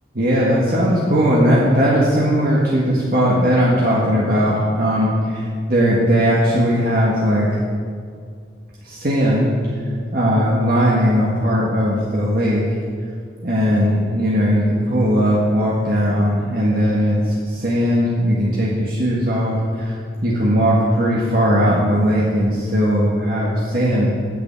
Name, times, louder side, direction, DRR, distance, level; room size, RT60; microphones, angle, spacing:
voice 1, 0.1-7.6 8.8-9.7 10.1-12.6 13.4-19.9 20.2-24.1, equal, 50° right, -6 dB, 1.7 m, -18 dB
9.3 x 7.1 x 8.6 m, 2.1 s
head